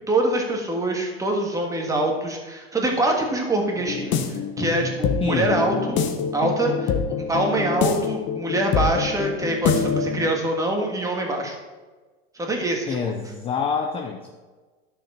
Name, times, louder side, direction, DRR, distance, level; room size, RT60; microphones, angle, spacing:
voice 1, 0.1-6.0 6.3-6.9 7.3-11.5 12.3-13.1, right 1 dB, 10° right, 1 dB, 1.6 m, -24 dB
sound 1, 3.8-10.3, left 6 dB, 40° left, 1.1 m, -25 dB
voice 2, 5.2-5.5 12.9-14.3, left 6 dB, 20° left, 3 dB, 0.6 m, -26 dB
11.5 x 6.7 x 4.3 m, 1.3 s
supercardioid pair, 135°, 30 cm